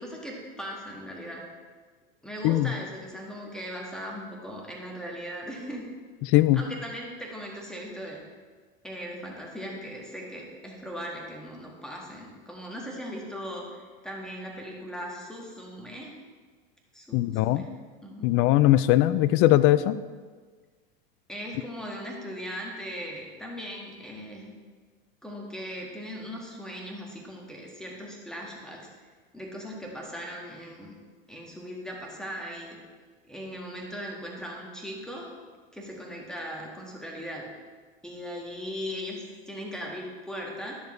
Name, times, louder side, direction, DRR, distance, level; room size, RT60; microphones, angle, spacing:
voice 1, 0.0-1.4 2.2-5.9 6.5-8.2 8.8-16.2 16.9-18.3 21.3-24.5 25.2-28.9 29.3-31.0 31.3-32.8 33.3-35.3 35.7-37.5 38.0-40.7, equal, ahead, -2 dB, 1.7 m, -39 dB
voice 2, 17.1-17.6 18.2-20.0, left 15 dB, 45° left, 15 dB, 0.4 m, -20 dB
10.5 x 6.7 x 3.2 m, 1.5 s
hypercardioid pair, 105°, 29 cm